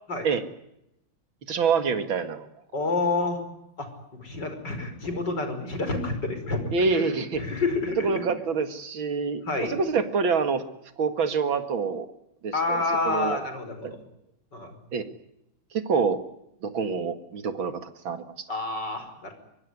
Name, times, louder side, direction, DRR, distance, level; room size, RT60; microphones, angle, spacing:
voice 1, 1.5-2.5 6.7-7.4 8.0-10.6 11.0-12.1 12.4-13.4 13.8-13.9 14.9-15.1 15.7-16.2 16.6-18.4, right 5 dB, 65° right, 10 dB, 2.8 m, -26 dB
voice 2, 2.7-3.4 3.8-6.6 6.9-8.2 9.5-9.8 12.5-14.0 14.5-14.7 18.5-19.3, left 3 dB, 55° left, 8 dB, 5.9 m, -29 dB
24.0 x 23.0 x 9.5 m, 0.83 s
omnidirectional pair, 2.3 m